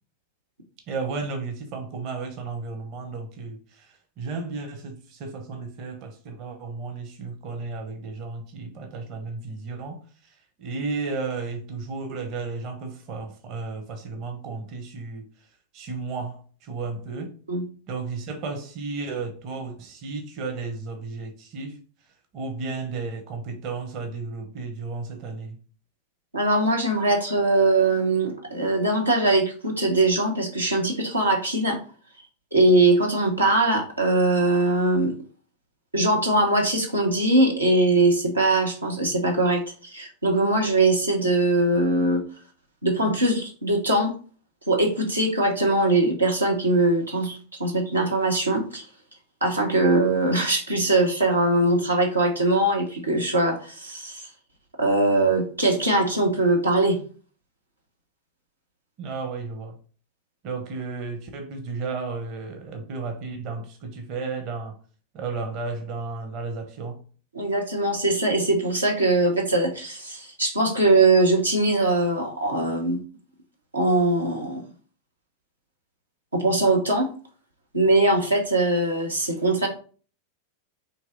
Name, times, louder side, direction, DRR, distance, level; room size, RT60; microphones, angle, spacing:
voice 1, 0.9-15.2 15.7-17.3 17.9-21.8 22.3-25.6 59.0-59.8 60.4-64.8 65.1-67.0, right 4 dB, 40° right, 1.0 m, -33 dB
voice 2, 26.3-31.8 32.5-35.1 35.9-42.2 42.8-44.1 44.7-48.8 49.4-54.3 54.8-57.0 67.3-73.0 73.7-74.6 76.3-77.1 77.7-79.7, right 2 dB, 80° right, 1.1 m, -21 dB
4.5 x 3.1 x 3.8 m
figure-of-eight pair, 90°, 0 cm